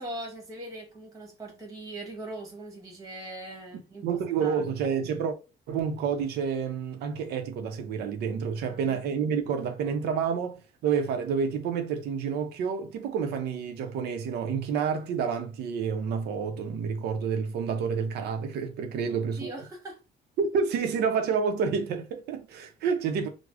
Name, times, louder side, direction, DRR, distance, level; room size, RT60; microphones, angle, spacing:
voice 1, 0.0-4.6 8.7-9.0 19.0-20.0, right 1 dB, 20° right, 1.1 m, -41 dB
voice 2, 4.0-5.4 5.7-19.5 20.4-23.3, right 6 dB, 75° right, 0.5 m, -29 dB
4.7 x 2.0 x 2.3 m
cardioid pair, 155°, 17 cm